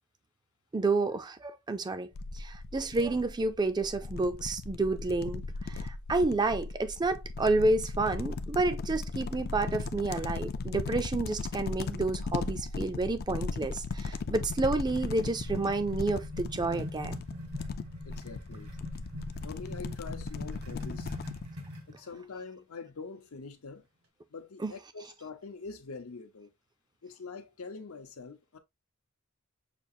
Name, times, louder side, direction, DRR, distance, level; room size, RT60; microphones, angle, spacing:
voice 1, 0.7-2.1 2.4-5.4 5.7-17.1 24.6-24.7, right 2 dB, 20° right, 0.4 m, -30 dB
sound 1, 2.1-21.5, left 4 dB, 45° left, 0.4 m, -37 dB
sound 2, 14.4-21.9, left 1 dB, 75° right, 1.9 m, -42 dB
voice 2, 18.0-18.7 19.4-21.1 21.9-23.9 24.3-26.5 27.0-28.6, left 4 dB, 85° left, 0.7 m, -44 dB
6.6 x 2.4 x 2.6 m
head